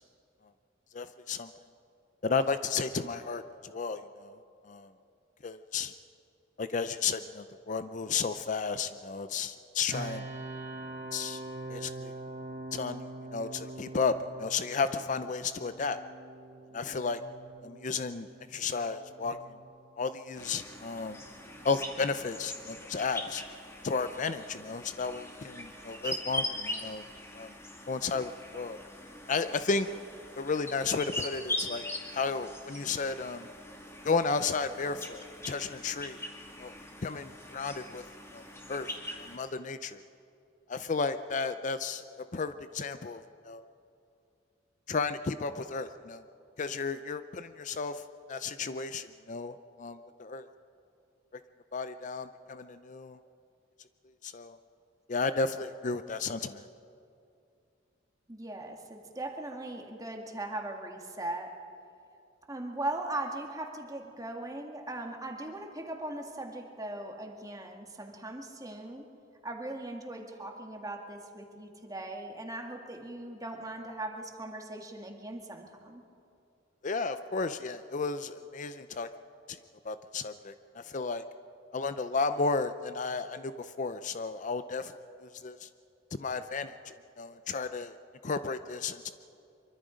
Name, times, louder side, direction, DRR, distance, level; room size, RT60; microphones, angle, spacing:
voice 1, 0.9-1.5 2.2-4.4 4.7-4.9 5.4-5.9 6.6-10.2 11.1-11.4 11.7-12.1 12.7-13.0 13.3-16.0 16.7-17.2 17.6-19.4 20.0-21.2 21.6-23.4 23.8-27.0 27.4-27.5 27.9-28.8 29.3-29.9 30.4-33.5 34.0-36.2 36.6-36.7 37.0-38.0 38.3-38.4 38.7-38.9 39.2-40.0 40.7-43.6 44.9-46.2 46.6-48.0 48.3-50.5 51.7-53.2 54.2-54.6 55.1-56.7 76.8-79.1 79.5-79.6 79.8-81.2 81.7-84.9 85.2-85.7 86.1-88.0 88.2-89.1, left 4 dB, 40° left, 11 dB, 0.5 m, -33 dB
sound 1, 9.9-22.7, right 2 dB, 50° right, 2.5 m, -45 dB
sound 2, 20.4-39.4, left 1 dB, 15° left, 2.2 m, -41 dB
voice 2, 58.3-61.6 62.5-69.1 69.4-76.0, right 1 dB, 20° right, 2 dB, 1.9 m, -39 dB
24.5 x 24.0 x 5.1 m, 2.6 s
head